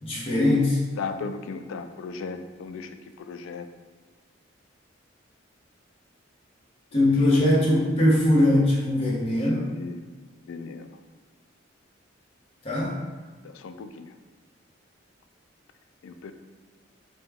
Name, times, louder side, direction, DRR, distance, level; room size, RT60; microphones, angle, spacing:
voice 1, 0.0-0.8 6.9-9.7 12.6-13.0, left 1 dB, 30° left, -6 dB, 1.1 m, -21 dB
voice 2, 1.0-2.9 3.3-3.7 7.8-7.9 9.7-10.0 10.5-10.9 13.4-14.1 16.0-16.3, left 4 dB, 90° left, 8 dB, 0.3 m, -36 dB
4.9 x 2.3 x 3.5 m, 1.4 s
head